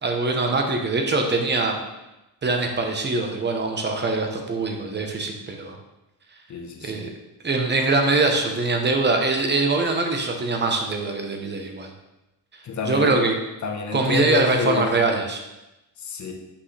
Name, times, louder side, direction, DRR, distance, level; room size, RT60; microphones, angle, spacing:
voice 1, 0.0-1.8 2.4-5.8 6.8-7.1 7.4-11.9 12.8-13.3 13.9-15.4, right 3 dB, 25° right, 3 dB, 1.0 m, -23 dB
voice 2, 6.5-7.1 12.6-13.2 13.6-15.0 16.0-16.3, left 5 dB, 45° left, 2 dB, 1.1 m, -28 dB
8.3 x 5.5 x 3.3 m, 0.97 s
cardioid pair, 145°, 42 cm